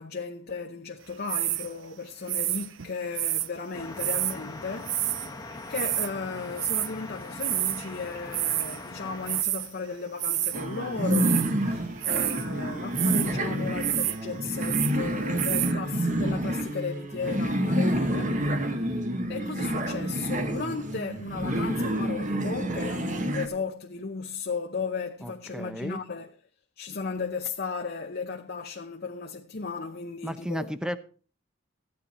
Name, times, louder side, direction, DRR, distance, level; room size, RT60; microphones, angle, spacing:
voice 1, 0.0-5.3 5.7-18.4 18.9-19.0 19.3-26.3 26.8-30.7, left 4 dB, 55° left, 0.8 m, -35 dB
sound 1, 1.3-1.7 2.3-3.5 4.0-4.4 4.8-5.3 5.5-6.1 6.6-6.9 7.4-7.9 8.2-8.8 9.3-9.7 10.2-10.6 11.0-11.5 12.0-12.5 12.9-13.3 13.8-14.2 14.4-15.0 15.4-15.7, right 14 dB, 80° right, 0.6 m, -28 dB
sound 2, 3.7-9.4, left 2 dB, 20° left, 1.2 m, -41 dB
sound 3, 10.5-23.5, right 1 dB, 40° right, 1.4 m, -28 dB
voice 2, 25.2-26.0 30.2-31.0, equal, 5° right, 0.8 m, -34 dB
14.5 x 9.5 x 4.3 m
head